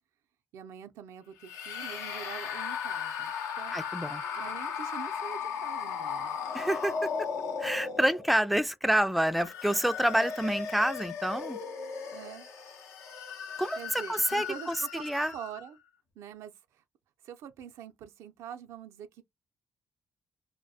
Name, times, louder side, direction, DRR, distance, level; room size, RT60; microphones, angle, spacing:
voice 1, 0.5-3.8 4.3-6.4 12.1-12.5 13.8-15.8 16.2-16.8 17.2-19.2, right 9 dB, 80° right, 0.4 m, -45 dB
sound 1, 1.4-8.5 9.2-15.7, left 6 dB, 80° left, 0.6 m, -36 dB
voice 2, 3.7-4.2 6.5-7.1 7.6-11.6 13.6-15.3, right 1 dB, ahead, 0.3 m, -28 dB
2.2 x 2.1 x 2.6 m
supercardioid pair, 60°, 5 cm